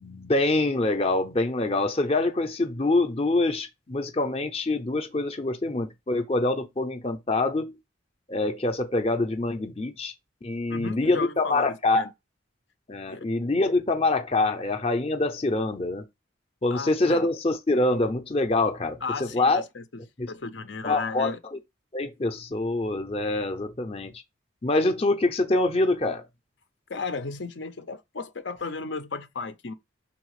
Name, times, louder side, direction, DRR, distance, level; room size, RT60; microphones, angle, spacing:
voice 1, 0.0-7.8 8.3-10.1 10.4-12.1 12.9-16.0 16.6-19.6 20.2-20.3 20.8-21.6 21.9-24.1 24.6-26.2, left 2 dB, 30° left, 0.7 m, -25 dB
voice 2, 10.7-11.7 11.9-12.1 13.1-13.3 16.7-17.3 19.0-19.8 20.3-21.4 26.9-29.7, left 4 dB, 65° left, 0.7 m, -34 dB
5.9 x 4.0 x 4.8 m
head